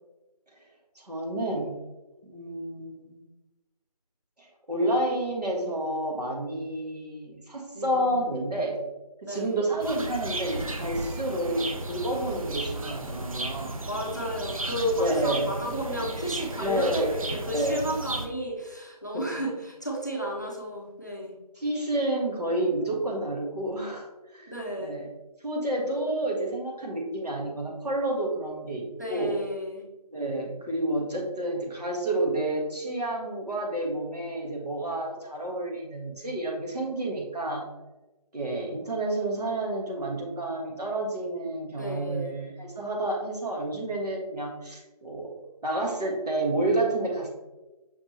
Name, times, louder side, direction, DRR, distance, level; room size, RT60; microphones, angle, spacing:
voice 1, 0.9-1.8 2.2-3.2 4.4-8.8 9.2-13.7 15.0-15.5 16.6-17.1 17.5-17.8 19.1-19.3 21.6-24.1 24.3-24.5 24.8-25.1 25.4-29.4 30.1-37.7 38.3-45.3 45.6-47.3, right 1 dB, 80° right, -1 dB, 1.6 m, -30 dB
voice 2, 7.7-8.2 9.2-9.7 13.8-21.3 24.5-24.9 29.0-29.8 41.7-42.3, equal, 30° left, -2 dB, 0.6 m, -32 dB
sound 1, 9.8-18.3, right 2 dB, 60° right, 0.6 m, -34 dB
5.8 x 3.2 x 2.9 m, 1.1 s
figure-of-eight pair, 180°, 20 cm